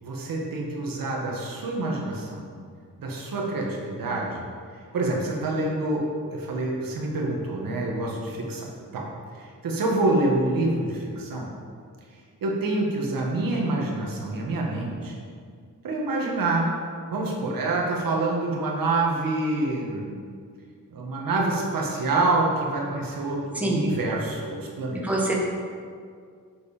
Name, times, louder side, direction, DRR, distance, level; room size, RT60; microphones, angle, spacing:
voice 1, 0.0-2.5 3.0-4.5 4.9-6.0 6.3-8.7 8.9-9.0 9.4-11.5 12.4-15.2 15.8-16.7 17.1-20.2 20.9-25.0, right 2 dB, 75° right, -1 dB, 1.7 m, -27 dB
voice 2, 23.6-23.9 25.0-25.3, right 1 dB, 5° right, -3 dB, 1.4 m, -24 dB
8.1 x 7.3 x 5.1 m, 2.1 s
wide cardioid pair, 155°, 34 cm